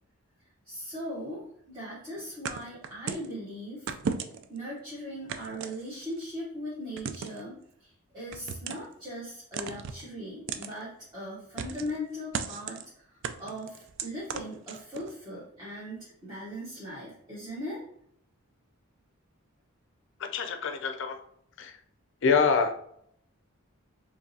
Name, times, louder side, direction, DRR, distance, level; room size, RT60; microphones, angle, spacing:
voice 1, 0.7-3.9 4.5-17.8, equal, 20° right, -9 dB, 1.1 m, -39 dB
sound 1, 2.4-3.3 3.9-4.6 5.3-6.2 7.0-7.4 8.3-8.9 9.5-10.0 10.5-10.7 11.6-12.0 12.3-12.8 13.2-15.1, right 6 dB, 60° right, 0.3 m, -35 dB
voice 2, 20.2-21.2 21.6-21.8 22.2-22.7, left 5 dB, 60° left, 7 dB, 0.5 m, -26 dB
4.5 x 3.0 x 2.7 m, 0.70 s
head